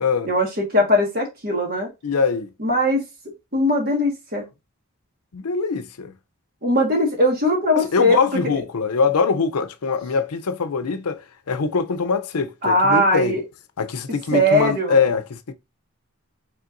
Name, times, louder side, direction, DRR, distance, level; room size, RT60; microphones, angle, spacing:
voice 1, 0.2-1.9 2.6-3.0 3.5-4.4 6.6-8.2 12.6-13.4 14.3-14.9, equal, 40° right, 1.6 m, -20 dB
voice 2, 2.0-2.5 5.3-6.1 7.8-13.4 13.8-15.5, left 5 dB, 90° left, 0.6 m, -23 dB
5.6 x 3.6 x 2.5 m
head